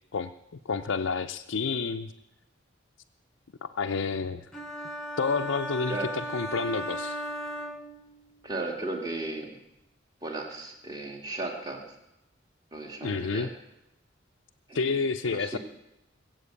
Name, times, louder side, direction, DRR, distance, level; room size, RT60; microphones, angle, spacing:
voice 1, 0.7-2.1 3.6-4.5 5.2-7.2 13.0-13.5 14.7-15.6, left 4 dB, 80° left, 3 dB, 0.6 m, -29 dB
sound 1, 4.5-8.4, equal, 5° left, 1.2 m, -36 dB
voice 2, 8.4-9.6 10.2-11.8 12.7-13.5 14.7-14.8 15.3-15.6, right 2 dB, 20° right, 1 dB, 2.1 m, -35 dB
20.5 x 7.8 x 8.4 m, 0.89 s
head